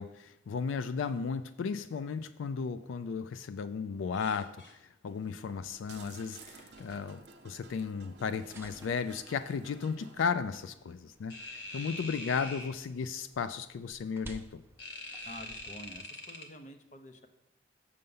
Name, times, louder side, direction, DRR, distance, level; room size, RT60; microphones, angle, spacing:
voice 1, 0.0-14.6, left 5 dB, 85° left, 13 dB, 0.3 m, -35 dB
sound 1, 4.1-4.7 6.1-7.0 11.3-12.7 14.8-16.5, left 2 dB, 60° left, 1.1 m, -44 dB
sound 2, 5.1-10.2, right 5 dB, 60° right, 0.7 m, -55 dB
sound 3, 5.4-16.0, right 1 dB, 10° right, 0.5 m, -56 dB
voice 2, 15.2-17.3, left 1 dB, 40° left, 7 dB, 0.7 m, -48 dB
6.8 x 6.5 x 5.4 m, 0.89 s
head